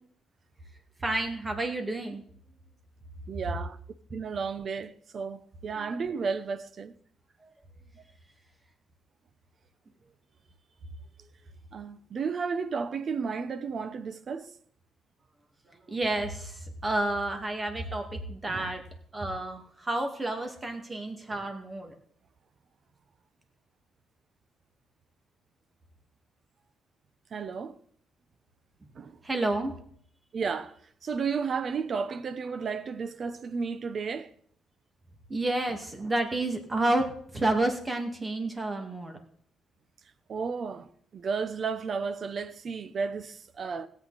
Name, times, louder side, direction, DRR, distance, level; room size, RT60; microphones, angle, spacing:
voice 1, 1.0-2.2 7.4-7.5 15.7-18.8 19.1-21.9 29.2-29.7 35.3-39.2, right 2 dB, 25° right, 2.1 m, -30 dB
voice 2, 3.3-3.8 4.1-6.9 11.7-14.5 18.5-18.7 27.3-27.8 29.0-29.1 30.3-30.7 31.0-34.3 40.3-40.9 41.1-43.9, right 5 dB, 50° right, 0.8 m, -33 dB
16.5 x 8.4 x 4.2 m
cardioid pair, 90°, 0 cm